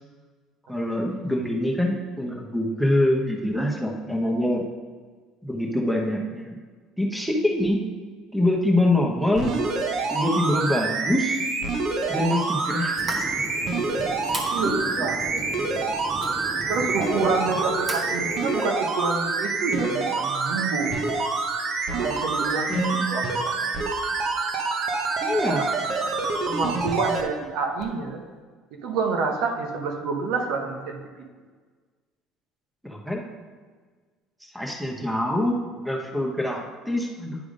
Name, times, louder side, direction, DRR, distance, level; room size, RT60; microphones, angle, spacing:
voice 1, 0.7-4.6 5.4-6.5 7.0-7.8 8.3-9.5 10.1-11.4 12.1-13.2 22.4-23.1 25.2-25.7 32.8-33.2 34.4-35.6 35.8-37.4, left 1 dB, 5° right, 0 dB, 1.0 m, -25 dB
sound 1, 9.3-27.2 27.8-27.9, right 4 dB, 55° right, 0.9 m, -27 dB
sound 2, 13.0-18.6, right 2 dB, 30° right, 1.1 m, -35 dB
voice 2, 14.5-15.4 16.7-21.0 21.9-22.7 23.0-23.5 25.6-25.7 26.4-28.2 28.8-31.0, right 4 dB, 75° right, 3 dB, 1.0 m, -28 dB
9.9 x 3.5 x 5.2 m, 1.5 s
cardioid pair, 120°, 0 cm